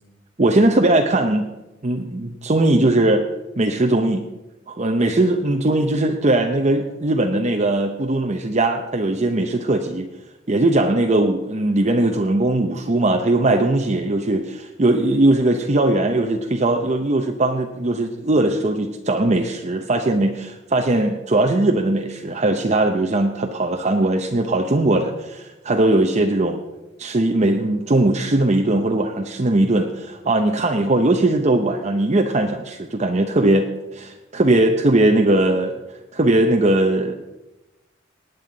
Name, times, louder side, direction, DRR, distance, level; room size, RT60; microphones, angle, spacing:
voice 1, 0.4-1.4 1.8-3.2 3.6-4.2 4.7-10.1 10.5-26.6 27.0-33.7 33.9-35.8 36.1-37.1, right 2 dB, 35° right, 4 dB, 0.7 m, -19 dB
19.0 x 9.2 x 4.0 m, 0.99 s
head